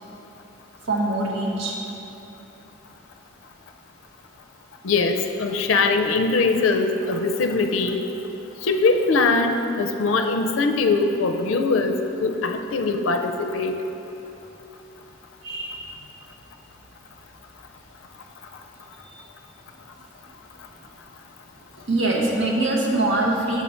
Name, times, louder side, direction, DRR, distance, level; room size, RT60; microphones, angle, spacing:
voice 1, 0.9-1.8 15.4-15.8 19.1-19.2 21.9-23.6, right 2 dB, 75° right, -2 dB, 1.0 m, -23 dB
voice 2, 4.8-8.0 8.6-13.8, left 3 dB, 80° left, 6 dB, 0.4 m, -22 dB
6.2 x 5.5 x 4.3 m, 3.0 s
head